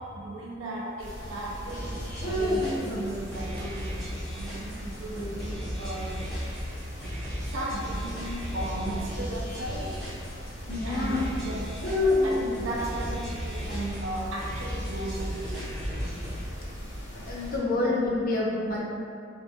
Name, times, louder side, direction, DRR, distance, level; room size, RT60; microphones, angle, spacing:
voice 1, 0.0-6.2 7.5-10.0 10.8-11.7 12.2-15.9 17.7-17.9, right 1 dB, 70° right, -3 dB, 0.5 m, -36 dB
sound 1, 1.0-17.6, left 1 dB, 90° left, 0.8 m, -34 dB
sound 2, 1.7-16.5, equal, ahead, 0.9 m, -36 dB
voice 2, 10.7-11.2 17.2-18.8, left 2 dB, 45° left, -5 dB, 0.5 m, -28 dB
2.6 x 2.4 x 2.4 m, 2.4 s
head